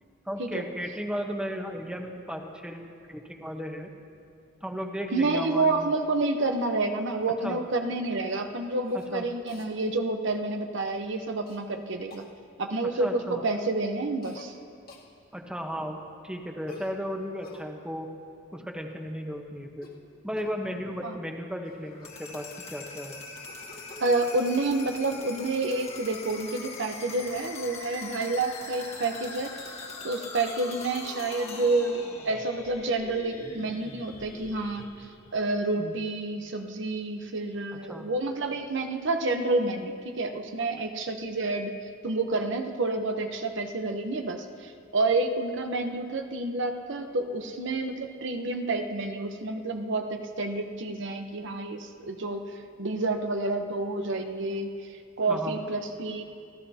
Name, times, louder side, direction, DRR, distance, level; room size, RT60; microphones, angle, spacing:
voice 1, 0.2-3.9 4.6-5.9 7.4-7.6 8.9-9.3 12.9-13.4 15.3-18.1 18.5-19.9 20.2-23.2 35.8-36.0 37.7-38.1 55.3-55.6, equal, 5° right, 2 dB, 1.1 m, -35 dB
voice 2, 5.1-12.2 12.6-14.5 21.0-21.1 24.0-29.6 30.0-34.9 35.3-41.8 42.0-54.9 55.2-56.2, right 2 dB, 65° right, 5 dB, 0.9 m, -29 dB
Cough, 8.8-9.1 9.5-9.7 11.5-11.6 12.1-12.3 14.2-14.5 14.9-15.1 16.7-17.7 19.7-20.0 20.4-20.6 21.3-21.4 21.6-22.7 23.5-24.6, left 2 dB, 50° left, 1.9 m, -50 dB
sound 1, 21.9-35.7, left 3 dB, 35° left, 1.5 m, -42 dB
28.0 x 14.5 x 2.9 m, 2.3 s
head